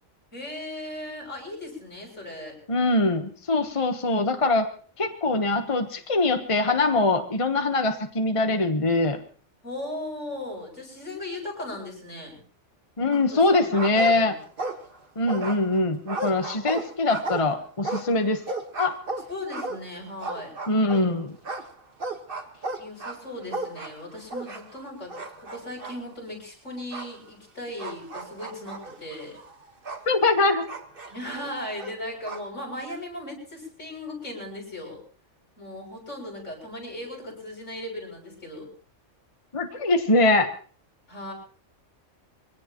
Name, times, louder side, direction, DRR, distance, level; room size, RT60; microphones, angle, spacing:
voice 1, 0.3-2.6 9.6-12.4 13.3-14.4 19.3-20.5 22.8-29.4 31.1-35.0 35.6-38.7 41.1-41.3, left 1 dB, 80° left, -2 dB, 7.7 m, -37 dB
voice 2, 2.7-4.7 5.0-9.2 13.0-14.3 15.2-18.4 18.8-18.9 20.7-21.3 30.1-30.7 39.5-40.5, left 2 dB, 25° left, 6 dB, 1.2 m, -23 dB
sound 1, 13.1-13.5 13.7-15.0 15.3-21.1 21.4-24.8 25.1-26.0 26.9-27.1 27.8-30.1 30.7-32.5, right 2 dB, 45° right, 1.7 m, -35 dB
24.5 x 17.5 x 3.0 m, 0.42 s
omnidirectional pair, 1.3 m